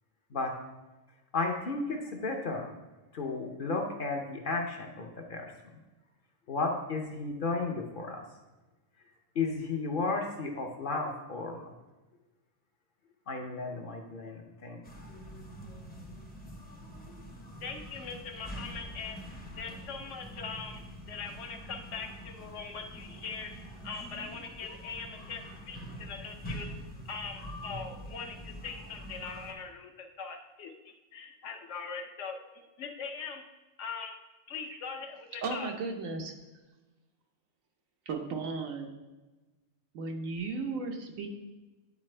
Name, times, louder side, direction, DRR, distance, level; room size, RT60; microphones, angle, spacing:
voice 1, 1.3-2.7 3.1-5.8 6.5-8.3 9.3-11.7 13.3-14.8, left 3 dB, 50° left, 2 dB, 0.7 m, -33 dB
sound 1, 14.8-29.5, equal, 10° left, 0.5 m, -45 dB
voice 2, 17.6-19.2 19.6-20.8 21.1-26.7 27.1-32.4 32.8-33.4 33.8-34.1 34.5-35.7, left 5 dB, 70° left, 4 dB, 1.0 m, -41 dB
voice 3, 35.4-36.3 38.1-39.0 39.9-41.3, right 4 dB, 85° right, 3 dB, 1.2 m, -35 dB
9.5 x 4.1 x 3.2 m, 1.1 s
omnidirectional pair, 1.3 m